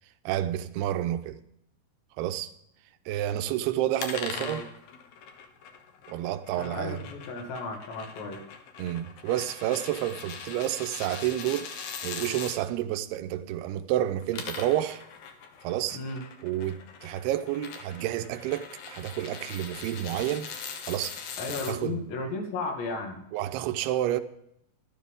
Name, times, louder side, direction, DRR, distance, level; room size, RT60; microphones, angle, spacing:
voice 1, 0.3-1.4 2.2-2.5 3.1-4.6 6.1-7.0 8.8-15.0 15.6-16.0 16.4-20.5 20.9-22.0 23.3-24.2, right 12 dB, 80° right, 2.6 m, -30 dB
sound 1, 4.0-12.6 14.1-21.8, left 6 dB, 65° left, 2.9 m, -41 dB
voice 2, 6.6-8.4 15.9-16.2 21.4-23.2, left 3 dB, 85° left, 4.6 m, -34 dB
12.5 x 12.5 x 3.6 m
omnidirectional pair, 4.9 m